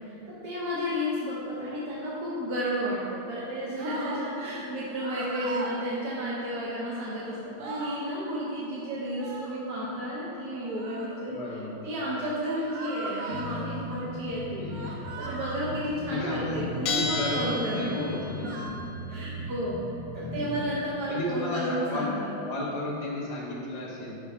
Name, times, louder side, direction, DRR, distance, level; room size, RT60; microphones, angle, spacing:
voice 1, 0.0-17.9 18.4-18.5 19.1-19.8 20.1-22.3, equal, 60° right, -7 dB, 1.1 m, -32 dB
sound 1, 3.8-4.3 4.9-5.8 7.1-7.2 7.4-8.0 9.1-9.6 10.6-11.2 12.7-13.7 14.7-15.7 16.6-17.0 17.9-18.7, right 3 dB, 85° right, 1.6 m, -39 dB
voice 2, 11.3-12.0 14.6-14.9 16.1-18.7 19.0-19.4 20.2-20.7 21.1-22.1 22.4-24.2, left 1 dB, 75° left, -5 dB, 0.3 m, -34 dB
sound 2, 13.3-20.7, equal, 50° left, 0.8 m, -38 dB
Bell, 16.8-18.4, left 3 dB, 90° left, 0.7 m, -32 dB
6.6 x 4.6 x 3.4 m, 2.8 s
omnidirectional pair, 2.4 m